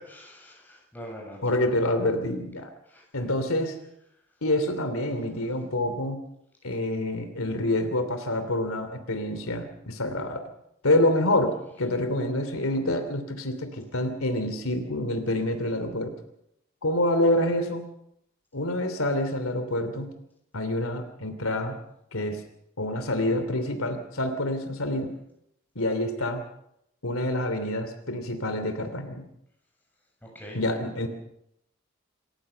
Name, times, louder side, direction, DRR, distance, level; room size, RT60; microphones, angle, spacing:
voice 1, 0.0-1.5 2.9-3.3 30.2-30.6, equal, 10° left, -1 dB, 7.3 m, -44 dB
voice 2, 1.4-2.7 3.1-3.8 4.4-6.2 6.6-10.4 10.8-16.1 16.8-17.8 18.5-20.1 20.5-21.8 22.1-22.4 22.8-25.1 25.7-26.4 27.0-29.2 30.5-31.1, left 1 dB, 80° left, 8 dB, 2.9 m, -27 dB
27.5 x 15.5 x 6.9 m, 0.79 s
head